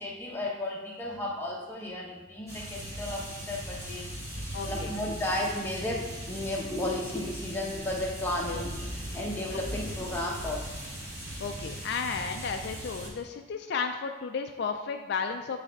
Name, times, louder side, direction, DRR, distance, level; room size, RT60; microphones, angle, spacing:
voice 1, 0.0-4.1 4.6-8.8 9.1-10.6, left 1 dB, 10° left, -3 dB, 0.9 m, -33 dB
sound 1, 2.5-13.1, right 1 dB, 15° right, 1.6 m, -39 dB
voice 2, 4.5-4.9 8.4-8.6 11.4-15.6, left 5 dB, 55° left, 5 dB, 0.3 m, -33 dB
8.1 x 3.3 x 4.0 m, 1.2 s
head